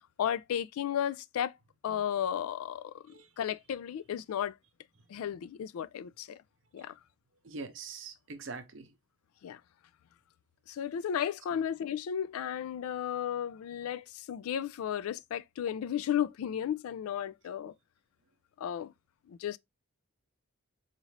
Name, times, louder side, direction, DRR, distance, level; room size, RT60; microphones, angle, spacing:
voice 1, 0.2-1.5 1.8-3.0 3.4-4.6 5.1-6.4 6.7-6.9 9.4-9.6 10.7-17.7 18.6-18.9 19.3-19.6, left 9 dB, 85° left, 0.3 m, -34 dB
voice 2, 7.4-8.9, right 4 dB, 60° right, 0.6 m, -43 dB
4.1 x 2.5 x 3.1 m
head